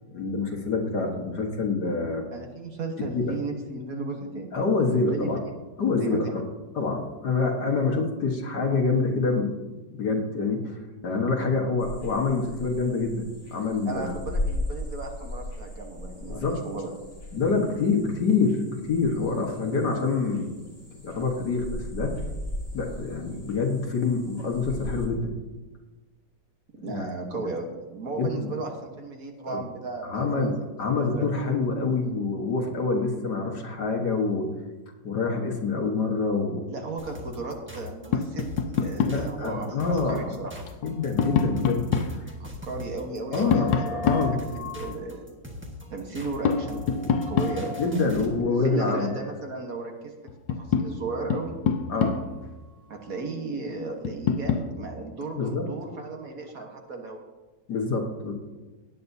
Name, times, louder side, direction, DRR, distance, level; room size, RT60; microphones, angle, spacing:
voice 1, 0.1-2.2 3.1-3.4 4.5-5.4 5.8-6.4 6.8-9.5 9.9-10.8 11.0-14.1 16.3-16.6 17.3-20.5 21.0-22.2 22.7-25.3 26.8-27.5 28.2-28.5 29.4-29.6 30.0-34.5 35.0-36.7 39.0-40.4 40.8-41.9 43.3-44.4 47.8-49.1 51.9-52.2 55.3-55.7 57.7-58.3, left 4 dB, 65° left, 1 dB, 2.0 m, -26 dB
voice 2, 2.3-4.5 4.8-5.3 6.0-6.2 13.9-16.9 26.8-31.3 36.7-40.6 42.4-44.0 44.5-45.2 45.9-50.1 50.6-51.5 52.9-57.2, right 3 dB, 55° right, 2 dB, 1.6 m, -35 dB
sound 1, 11.8-25.1, left 1 dB, 40° left, 4.1 m, -37 dB
sound 2, 37.0-48.4, left 2 dB, 10° right, 1.1 m, -40 dB
Tap, 38.1-39.3 40.7-42.2 43.5-44.9 46.4-48.0 49.8-49.9 50.3-52.5 54.0-54.7, left 6 dB, 80° left, 1.3 m, -26 dB
17.5 x 9.3 x 2.7 m, 1.2 s
omnidirectional pair, 2.0 m